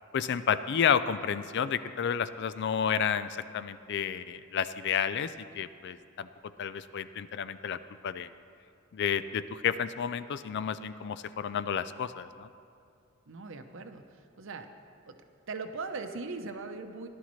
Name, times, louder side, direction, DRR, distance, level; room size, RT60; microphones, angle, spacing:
voice 1, 0.1-6.3 6.6-8.3 8.9-12.5, left 7 dB, 55° left, 13 dB, 0.4 m, -31 dB
voice 2, 13.3-14.0 14.4-14.7 15.5-17.1, right 4 dB, 65° right, 7 dB, 0.8 m, -39 dB
17.0 x 11.5 x 3.1 m, 2.4 s
head